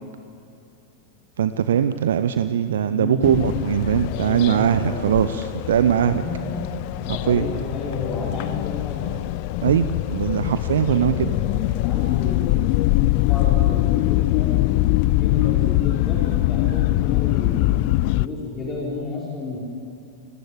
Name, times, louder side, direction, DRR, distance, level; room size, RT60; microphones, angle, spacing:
voice 1, 1.4-6.2 7.1-7.5 9.6-11.3, right 9 dB, 60° right, 12 dB, 0.7 m, -21 dB
voice 2, 2.9-3.5 4.2-5.0 6.0-6.6 7.0-9.6 10.9-14.6 15.2-19.6, left 3 dB, 25° left, -6 dB, 5.8 m, -32 dB
sound 1, 3.2-18.3, left 18 dB, 45° left, 0.4 m, -23 dB
29.5 x 14.5 x 8.4 m, 2.6 s
figure-of-eight pair, 90°, 0 cm